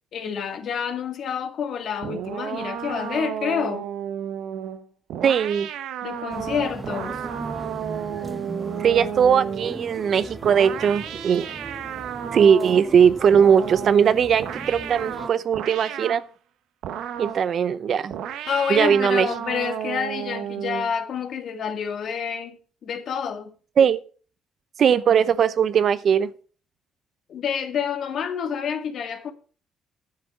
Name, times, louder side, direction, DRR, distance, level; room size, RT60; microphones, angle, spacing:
voice 1, 0.1-3.9 6.0-7.2 18.5-22.6 22.8-23.5 27.3-29.3, left 7 dB, 60° left, 2.0 m, -28 dB
sound 1, 2.0-9.8 10.4-12.9 13.3-16.3 16.8-17.5 18.1-20.9, right 9 dB, 80° right, 1.0 m, -33 dB
voice 2, 5.2-5.7 8.8-11.5 12.3-16.2 17.2-18.1 18.7-19.3 23.8-24.0 24.8-26.3, right 7 dB, 55° right, 0.7 m, -19 dB
sound 2, 6.3-15.3, right 2 dB, 15° right, 0.9 m, -38 dB
10.5 x 6.6 x 7.3 m
cardioid pair, 100°, 0 cm